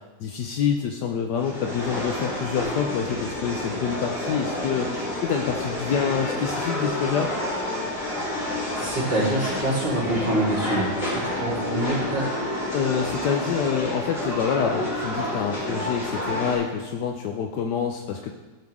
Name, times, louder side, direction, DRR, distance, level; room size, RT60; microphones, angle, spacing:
voice 1, 0.2-7.3 12.7-18.3, left 7 dB, 70° left, 3 dB, 1.2 m, -27 dB
sound 1, 1.4-16.6, left 1 dB, 45° left, 2.9 m, -29 dB
voice 2, 8.7-12.2, right 1 dB, 10° right, -10 dB, 3.6 m, -25 dB
16.0 x 5.7 x 3.6 m, 1.2 s
omnidirectional pair, 2.0 m